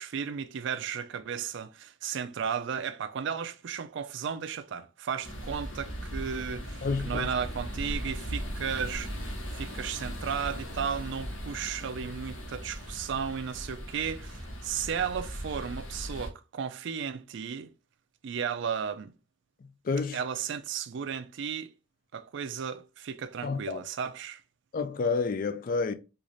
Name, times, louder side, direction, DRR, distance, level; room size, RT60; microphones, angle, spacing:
voice 1, 0.0-9.3 9.5-17.7 18.2-19.1 20.1-21.7 22.1-24.4, right 7 dB, 60° right, 0.4 m, -34 dB
sound 1, 5.2-16.3, equal, 75° left, 1.2 m, -38 dB
voice 2, 6.8-7.3 19.8-20.2 23.4-23.8 24.7-25.9, left 4 dB, 45° left, 0.3 m, -29 dB
3.9 x 2.5 x 3.1 m
head